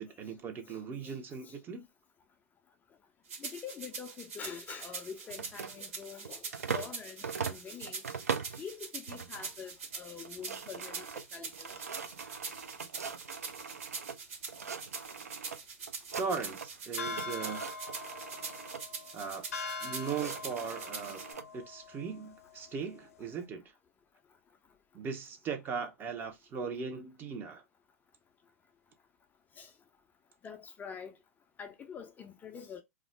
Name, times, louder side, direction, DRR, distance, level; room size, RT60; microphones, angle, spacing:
voice 1, 0.0-1.9 16.1-17.7 19.1-19.4 19.8-21.2 21.5-23.6 24.9-27.6, right 5 dB, 25° right, 0.6 m, -38 dB
voice 2, 0.7-1.2 1.4-1.5 3.4-8.0 8.5-11.0 11.3-11.8 21.0-21.1 29.6-29.7 30.4-31.2 31.6-32.8, left 7 dB, 20° left, 0.4 m, -45 dB
sound 1, 3.3-21.3, right 5 dB, 60° right, 1.2 m, -44 dB
sound 2, 5.3-6.9 7.2-8.6 9.1-9.5 9.8-9.9 10.2-14.2 14.5-15.6 15.9-16.8 17.1-18.8 19.6-21.4, right 6 dB, 80° right, 0.4 m, -41 dB
sound 3, 17.0-23.4, left 4 dB, 70° left, 0.6 m, -43 dB
2.3 x 2.0 x 3.2 m
hypercardioid pair, 100°, 8 cm